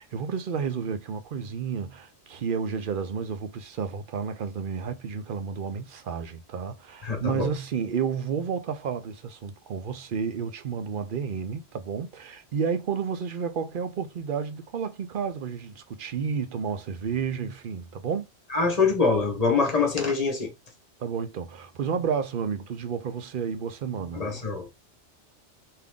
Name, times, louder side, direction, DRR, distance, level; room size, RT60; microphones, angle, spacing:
voice 1, 0.0-18.3 21.0-24.3, right 6 dB, 55° right, 0.7 m, -31 dB
voice 2, 7.0-7.5 18.5-20.5 24.1-24.7, left 4 dB, 35° left, 1.2 m, -24 dB
3.6 x 2.8 x 3.6 m
omnidirectional pair, 1.2 m